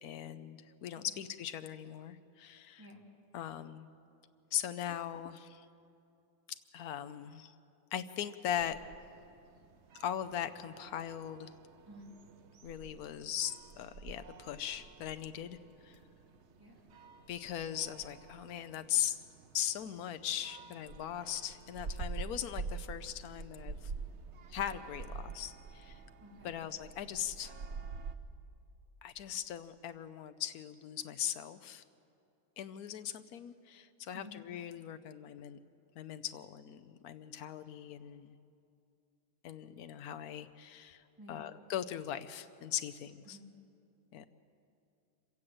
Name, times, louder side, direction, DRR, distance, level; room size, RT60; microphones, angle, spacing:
voice 1, 0.0-2.9 3.3-3.9 4.5-5.7 6.5-7.5 7.9-8.8 9.9-11.5 12.6-16.0 17.3-19.2 19.5-23.9 24.5-26.0 26.4-27.5 29.0-31.8 32.6-35.6 36.0-38.3 39.4-43.4 44.1-44.3, left 10 dB, 80° left, 11 dB, 0.8 m, -39 dB
sound 1, 8.5-28.2, right 4 dB, 85° right, 0.6 m, -47 dB
voice 2, 11.9-12.2 16.6-16.9 26.2-26.6 34.1-34.5 41.2-41.5 43.3-43.5, left 1 dB, 10° right, -2 dB, 3.1 m, -53 dB
26.0 x 16.5 x 7.8 m, 2.5 s
omnidirectional pair, 2.4 m